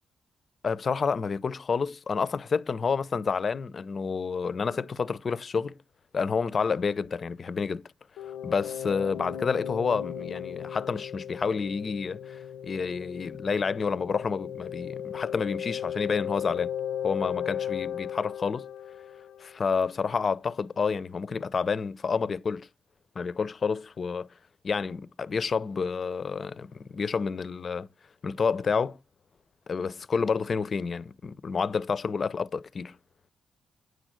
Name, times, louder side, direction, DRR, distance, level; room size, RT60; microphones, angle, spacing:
voice 1, 0.6-5.8 6.1-7.9 8.2-16.7 17.0-18.7 19.4-22.7 23.2-24.3 24.6-27.9 28.2-29.0 29.7-33.0, left 5 dB, 45° left, 0.5 m, -29 dB
sound 1, 8.2-19.8, left 9 dB, 90° left, 0.7 m, -36 dB
9.6 x 6.3 x 6.2 m
cardioid pair, 85°, 0 cm